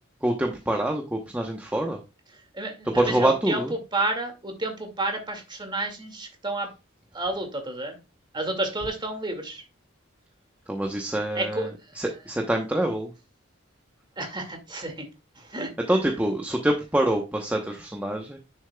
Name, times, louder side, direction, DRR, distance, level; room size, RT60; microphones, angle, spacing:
voice 1, 0.2-2.0 2.9-3.7 10.7-11.7 12.0-13.1 15.9-18.4, right 1 dB, 10° right, 2 dB, 0.9 m, -25 dB
voice 2, 2.5-6.7 7.1-8.0 8.3-9.6 11.3-11.7 14.2-15.1 15.4-15.7, right 2 dB, 25° right, 4 dB, 2.1 m, -30 dB
10.5 x 6.5 x 2.3 m, 0.27 s
head